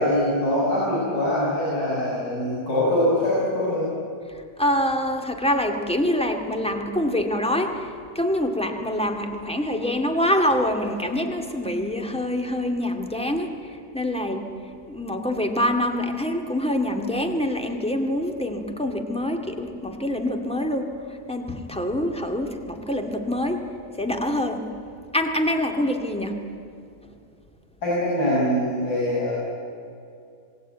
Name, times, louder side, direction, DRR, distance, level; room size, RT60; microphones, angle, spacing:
voice 1, 0.0-3.9 27.8-29.3, left 1 dB, 75° left, -7 dB, 6.9 m, -23 dB
voice 2, 4.6-7.8 8.2-13.5 13.9-14.4 14.9-20.9 21.3-23.6 24.0-24.6 25.1-26.3, left 1 dB, 5° left, 4 dB, 2.1 m, -25 dB
26.5 x 21.0 x 9.2 m, 2.4 s
omnidirectional pair, 1.7 m